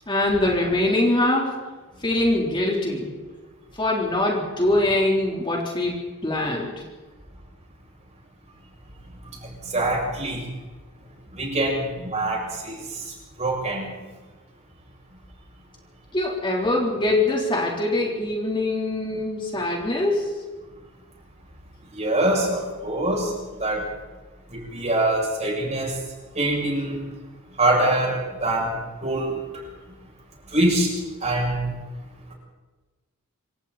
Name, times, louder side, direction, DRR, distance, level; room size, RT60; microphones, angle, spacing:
voice 1, 0.1-1.5 2.0-3.1 3.8-6.7 16.1-20.3, left 1 dB, 20° left, -2 dB, 3.8 m, -23 dB
voice 2, 9.4-10.4 11.3-13.1 13.4-13.9 21.9-23.3 23.6-23.9 24.5-26.0 26.4-27.0 27.6-29.4 30.5-30.9 31.2-31.7, right 1 dB, 30° right, -1 dB, 7.5 m, -24 dB
27.0 x 26.5 x 4.3 m, 1.2 s
head